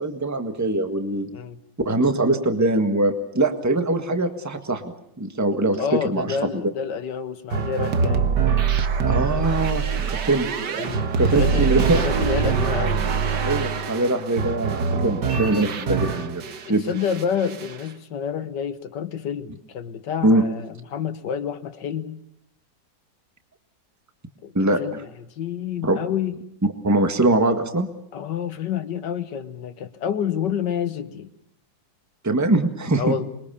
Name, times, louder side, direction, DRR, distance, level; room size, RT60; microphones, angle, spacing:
voice 1, 0.0-1.3 1.8-6.4 9.0-10.5 11.2-12.0 13.4-16.4 16.7-16.9 20.2-20.4 24.5-25.0 25.8-26.0 26.8-27.9 32.2-33.1, right 2 dB, 10° right, 7 dB, 1.6 m, -22 dB
voice 2, 1.3-1.6 5.5-8.3 10.8-13.1 16.6-22.2 24.4-24.5 24.8-26.3 28.1-31.3 33.0-33.3, left 7 dB, 70° left, 11 dB, 1.9 m, -29 dB
sound 1, 7.5-16.7 17.0-17.8, right 6 dB, 65° right, 1.9 m, -24 dB
27.0 x 23.0 x 7.0 m, 0.76 s
omnidirectional pair, 2.0 m